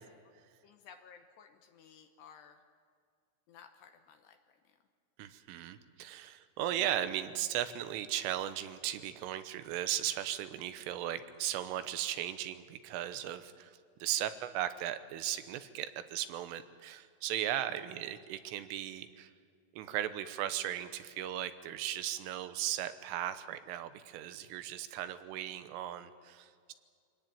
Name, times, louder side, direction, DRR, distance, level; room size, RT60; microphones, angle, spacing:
voice 1, 0.6-2.6 3.5-4.8, left 7 dB, 70° left, 6 dB, 2.8 m, -57 dB
voice 2, 5.2-19.3 19.7-26.7, right 12 dB, 85° right, 11 dB, 3.6 m, -37 dB
25.0 x 18.5 x 8.8 m, 2.1 s
omnidirectional pair, 5.7 m